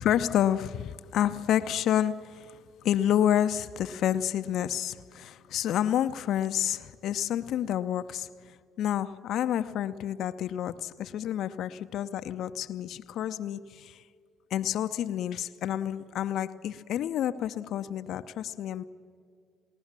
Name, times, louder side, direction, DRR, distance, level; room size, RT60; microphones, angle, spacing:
voice 1, 0.0-14.0 14.5-18.8, left 10 dB, 70° left, 0.7 m, -29 dB
27.5 x 20.5 x 7.4 m
supercardioid pair, 70°, 0 cm